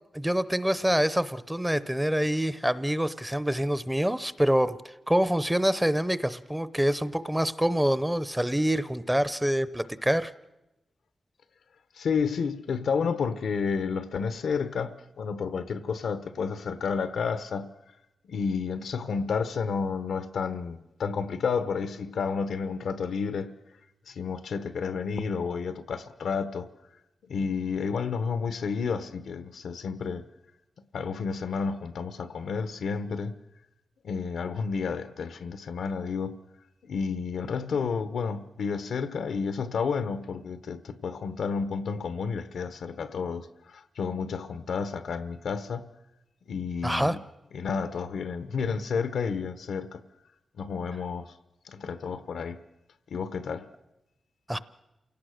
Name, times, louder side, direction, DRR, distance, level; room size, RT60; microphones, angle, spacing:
voice 1, 0.1-4.8 5.1-10.3 46.8-47.2 54.5-54.6, equal, 5° right, 0.7 m, -26 dB
voice 2, 11.9-17.7 18.2-23.5 24.1-26.7 27.2-30.3 30.9-33.4 34.0-36.4 36.8-45.9 46.5-47.2 47.5-50.0 50.6-51.4 51.6-52.6 53.1-53.7, left 5 dB, 85° left, 1.0 m, -31 dB
28.0 x 17.5 x 6.5 m
wide cardioid pair, 95°, 0 cm